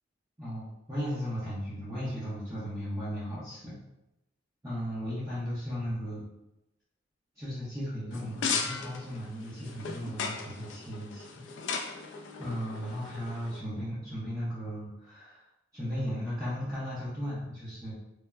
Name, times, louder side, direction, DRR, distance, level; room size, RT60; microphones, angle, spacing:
voice 1, 0.4-3.8 4.6-6.3 7.4-11.5 12.4-15.4 15.7-17.9, equal, 15° right, -11 dB, 0.6 m, -36 dB
sound 1, 8.1-13.6, left 5 dB, 70° left, 0.3 m, -37 dB
3.1 x 2.0 x 2.3 m, 0.92 s
head